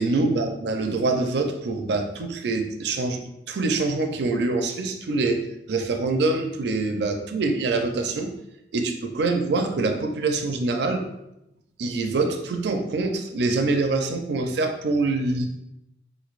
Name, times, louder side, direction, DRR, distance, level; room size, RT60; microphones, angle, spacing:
voice 1, 0.0-8.3 8.7-11.0 11.8-15.5, right 3 dB, 60° right, 5 dB, 0.4 m, -25 dB
4.0 x 3.1 x 2.4 m, 0.88 s
head